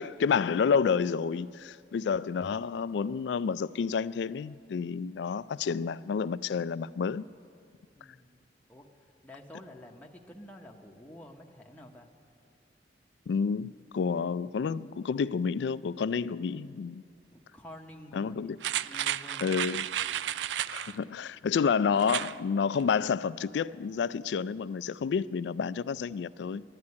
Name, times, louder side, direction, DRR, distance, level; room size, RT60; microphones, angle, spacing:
voice 1, 0.0-7.2 13.3-17.0 18.1-18.6 19.4-19.9 20.7-26.6, left 6 dB, 80° left, 0.3 m, -29 dB
voice 2, 8.0-8.4 8.7-12.1 17.3-19.6 20.6-21.0, left 1 dB, 10° left, 0.8 m, -50 dB
sound 1, 18.6-21.0 22.0-22.4 22.8-22.9, right 11 dB, 90° right, 0.3 m, -32 dB
11.5 x 11.0 x 9.6 m
head